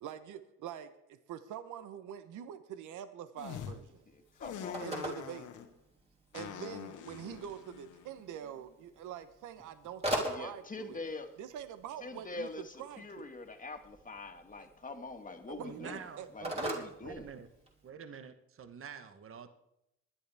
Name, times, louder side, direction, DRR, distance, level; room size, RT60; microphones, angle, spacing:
voice 1, 0.0-4.0 4.8-5.5 6.3-11.0 11.4-13.3 15.5-16.3, right 9 dB, 80° right, 11 dB, 0.9 m, -45 dB
sound 1, 3.4-3.7 4.4-5.7 6.3-8.7, left 9 dB, 80° left, 1.3 m, -45 dB
Telephone, 3.4-17.9, right 1 dB, 20° right, 3.5 m, -43 dB
voice 2, 4.1-4.9 10.3-11.3 12.0-16.0 16.3-17.3, left 3 dB, 25° left, 5 dB, 1.8 m, -44 dB
voice 3, 15.6-17.5 17.8-19.5, right 6 dB, 45° right, 9 dB, 1.2 m, -47 dB
23.0 x 10.0 x 3.5 m, 0.82 s
cardioid pair, 90°, 30 cm